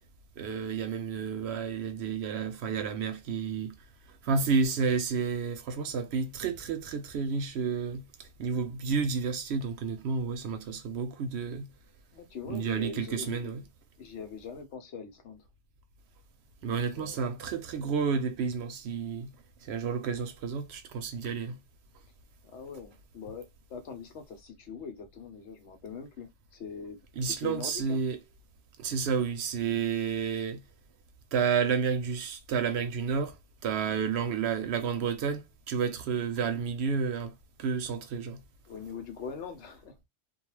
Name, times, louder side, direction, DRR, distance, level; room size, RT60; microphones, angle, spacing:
voice 1, 0.4-3.8 4.2-11.7 12.5-13.6 16.6-19.3 19.6-21.6 27.2-28.2 28.8-30.6 31.3-37.3 37.6-38.4, right 6 dB, 70° right, 0.8 m, -31 dB
voice 2, 12.1-13.5 14.0-15.5 17.0-17.2 22.4-28.0 38.7-40.0, left 6 dB, 75° left, 1.0 m, -42 dB
2.3 x 2.2 x 3.1 m
omnidirectional pair, 1.2 m